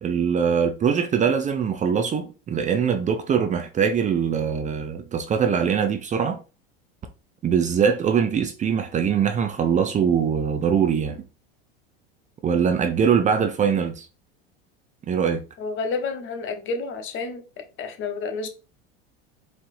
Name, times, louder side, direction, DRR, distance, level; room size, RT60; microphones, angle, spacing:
voice 1, 0.0-6.4 7.4-11.2 12.4-14.1 15.1-15.4, right 7 dB, 25° right, 0.5 m, -22 dB
voice 2, 15.6-17.4 17.8-18.5, left 4 dB, 45° left, 1.0 m, -30 dB
4.5 x 3.3 x 2.6 m
hypercardioid pair, 100°, 29 cm